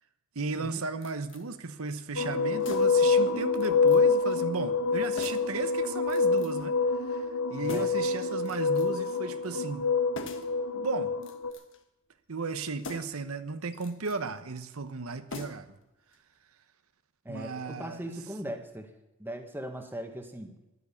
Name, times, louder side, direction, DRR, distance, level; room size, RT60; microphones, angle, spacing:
voice 1, 0.3-9.9 10.7-11.1 12.3-15.8 17.3-18.1, right 4 dB, 80° right, 10 dB, 1.0 m, -35 dB
sound 1, 1.0-1.5 2.6-3.1 3.6-4.0 4.3-4.4 5.2-5.6 6.1-6.7 7.6-8.1 8.5-9.1 10.1-10.6 11.2-11.8 12.8-13.3 13.7-14.2 15.3-15.8 16.1-16.2, left 2 dB, 60° left, 1.5 m, -43 dB
sound 2, 2.2-11.5, left 4 dB, 85° left, 1.2 m, -26 dB
voice 2, 7.6-7.9 17.3-18.9 19.2-20.5, right 1 dB, 10° right, 5 dB, 1.6 m, -39 dB
13.5 x 11.0 x 7.1 m, 0.96 s
head